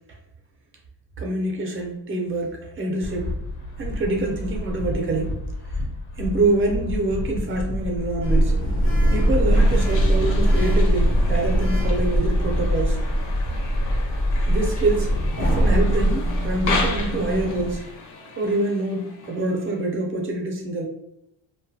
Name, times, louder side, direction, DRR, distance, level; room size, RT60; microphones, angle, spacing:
voice 1, 1.2-3.4 3.8-5.3 5.7-5.8 6.2-8.5 9.1-13.0 14.5-17.8 18.4-20.9, right 2 dB, 30° right, 1 dB, 0.5 m, -25 dB
sound 1, 3.0-12.9, left 1 dB, 90° left, 0.9 m, -30 dB
Sliding door, 8.2-17.8, equal, 30° left, 0.4 m, -21 dB
sound 2, 9.5-20.0, left 3 dB, 65° left, 0.6 m, -35 dB
2.6 x 2.2 x 2.5 m, 0.81 s
cardioid pair, 165°, 46 cm